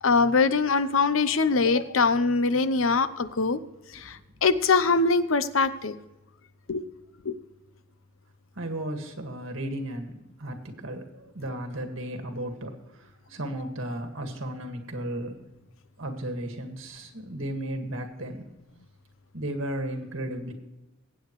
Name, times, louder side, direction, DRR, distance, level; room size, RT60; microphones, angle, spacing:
voice 1, 0.0-3.6 3.9-6.0 6.7-6.8 7.2-7.3, left 4 dB, 90° left, 13 dB, 0.7 m, -23 dB
voice 2, 8.6-15.4 16.0-18.5 19.3-20.5, right 1 dB, 75° right, 4 dB, 1.9 m, -34 dB
22.5 x 8.8 x 3.2 m, 1.0 s
head